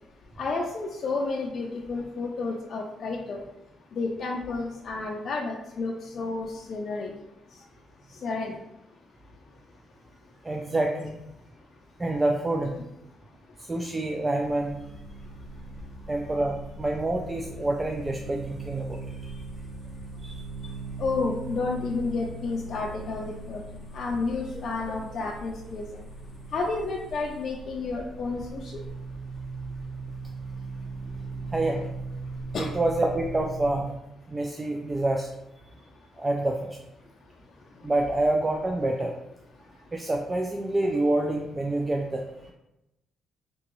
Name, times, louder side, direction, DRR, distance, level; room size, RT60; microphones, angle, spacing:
voice 1, 0.4-3.4 3.9-7.1 8.2-8.6 21.0-23.6 23.9-25.9 26.5-28.8 32.5-32.7, left 3 dB, 55° left, -1 dB, 0.4 m, -31 dB
voice 2, 10.4-11.1 12.0-12.7 13.6-14.8 16.1-19.4 20.2-20.4 31.5-31.9 32.6-34.0 34.3-35.3 36.2-36.8 37.8-39.1 39.9-42.5, right 2 dB, 20° right, 2 dB, 0.4 m, -27 dB
sound 1, 14.4-33.8, right 3 dB, 85° right, 1.1 m, -39 dB
3.4 x 3.0 x 3.0 m, 0.89 s
cardioid pair, 90°, 0 cm